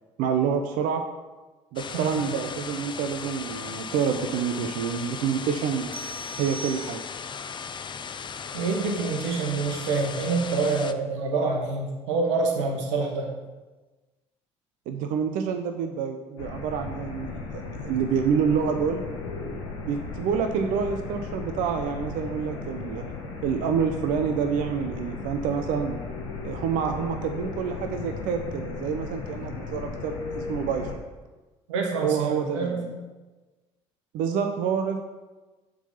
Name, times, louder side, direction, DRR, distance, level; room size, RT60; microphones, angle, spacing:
voice 1, 0.2-1.0 1.7-6.0 6.4-7.0 14.9-19.0 19.4-23.0 23.4-26.0 26.4-31.0 32.0-32.8 34.1-35.0, right 7 dB, 65° right, 6 dB, 0.6 m, -27 dB
sound 1, 1.8-10.9, left 6 dB, 30° left, 0.5 m, -37 dB
sound 2, 5.9-7.4, right 1 dB, 15° right, 0.8 m, -40 dB
voice 2, 8.5-13.3 31.7-32.9, right 4 dB, 85° right, 1 dB, 1.2 m, -26 dB
sound 3, 16.4-31.0, left 4 dB, 85° left, 1.0 m, -36 dB
7.1 x 3.8 x 5.5 m, 1.2 s
hypercardioid pair, 60°, 15 cm